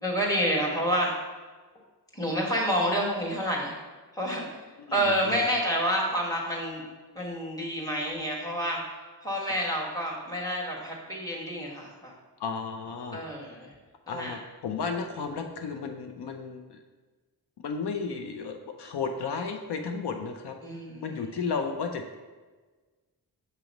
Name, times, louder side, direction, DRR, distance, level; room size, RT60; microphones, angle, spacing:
voice 1, 0.0-1.1 2.1-3.8 4.1-4.6 4.9-6.8 7.1-8.8 9.2-12.1 13.1-13.7 14.1-14.3 20.6-21.5, equal, 10° left, -3 dB, 1.3 m, -29 dB
voice 2, 4.9-5.4 12.4-13.2 14.1-16.8 17.6-20.6 20.9-22.1, left 5 dB, 75° left, 5 dB, 0.6 m, -33 dB
6.9 x 3.0 x 5.1 m, 1.3 s
wide cardioid pair, 125°, 40 cm